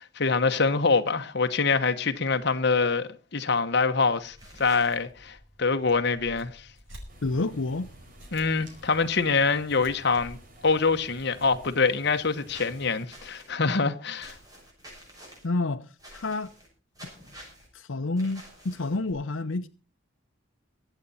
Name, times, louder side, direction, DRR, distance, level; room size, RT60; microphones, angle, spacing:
voice 1, 0.0-6.7 8.3-10.4 10.6-14.3, left 4 dB, 60° left, 1.1 m, -25 dB
sound 1, 4.2-11.8, equal, 80° right, 5.6 m, -51 dB
sound 2, 4.4-4.9 12.5-13.5 14.2-15.5 16.0-16.7 16.9-17.7 18.2-19.1, equal, 20° right, 6.2 m, -49 dB
sound 3, 7.1-13.1, right 1 dB, 45° right, 5.0 m, -53 dB
voice 2, 7.2-7.9 15.4-16.5 17.7-19.7, left 2 dB, 85° left, 0.8 m, -29 dB
23.5 x 8.3 x 4.2 m
head